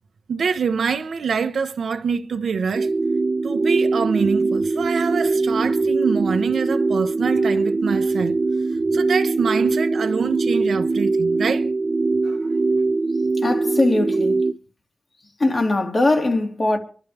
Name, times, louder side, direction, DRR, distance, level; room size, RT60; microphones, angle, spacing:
voice 1, 0.3-2.9 3.4-8.4 8.9-11.7 12.2-12.4, right 6 dB, 80° right, 1.0 m, -25 dB
sound 1, 2.7-14.5, right 3 dB, 50° right, 0.6 m, -21 dB
voice 2, 13.3-14.5 15.4-16.8, left 2 dB, 45° left, 2.9 m, -20 dB
25.5 x 12.0 x 3.5 m
cardioid pair, 75°, 0 cm